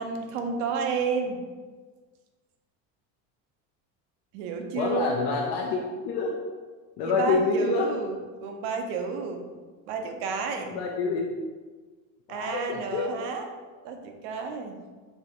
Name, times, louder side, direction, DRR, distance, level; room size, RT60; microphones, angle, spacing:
voice 1, 0.0-1.4 4.3-5.2 7.1-8.1 8.4-9.4 9.9-10.8 12.3-13.4 13.8-14.8, right 5 dB, 70° right, 4 dB, 0.8 m, -31 dB
voice 2, 4.7-5.8 6.0-6.3 7.0-7.9 10.6-11.4 12.3-13.1, left 4 dB, 60° left, -2 dB, 0.8 m, -27 dB
4.5 x 2.6 x 4.3 m, 1.4 s
supercardioid pair, 115°, 41 cm